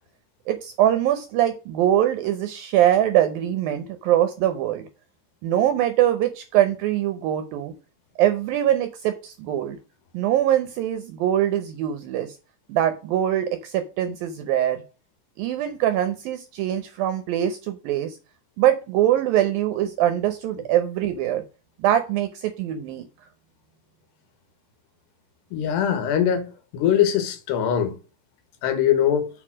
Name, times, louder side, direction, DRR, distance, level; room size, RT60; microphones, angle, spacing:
voice 1, 0.5-4.9 5.4-7.7 8.2-9.8 10.1-12.3 12.7-14.8 15.4-18.2 18.6-21.4 21.8-23.1, right 11 dB, 75° right, 2.2 m, -23 dB
voice 2, 25.5-27.9 28.6-29.3, left 9 dB, 75° left, 3.3 m, -22 dB
8.1 x 4.6 x 6.2 m
omnidirectional pair, 5.0 m